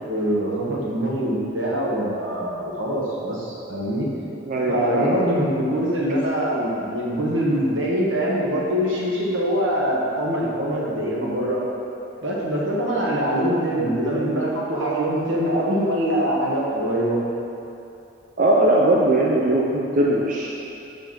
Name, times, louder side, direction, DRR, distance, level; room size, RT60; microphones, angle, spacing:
voice 1, 0.1-4.1 4.7-11.6 12.2-17.2, equal, 80° right, -5 dB, 1.4 m, -23 dB
voice 2, 4.5-5.2 18.4-20.5, right 1 dB, 45° right, -4 dB, 0.5 m, -19 dB
5.8 x 4.9 x 4.8 m, 2.9 s
head